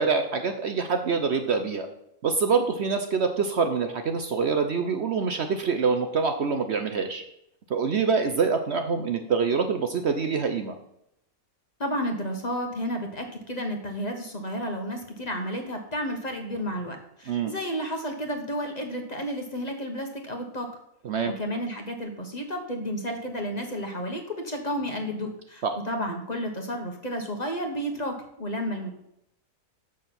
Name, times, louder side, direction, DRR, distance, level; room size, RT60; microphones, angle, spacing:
voice 1, 0.0-1.9 2.2-7.2 7.7-10.7 17.3-17.5 21.0-21.3 25.6-25.7, right 5 dB, 55° right, 6 dB, 0.9 m, -25 dB
voice 2, 11.8-20.7 21.2-28.9, equal, 30° left, 3 dB, 1.2 m, -32 dB
7.3 x 6.4 x 5.9 m, 0.79 s
omnidirectional pair, 1.5 m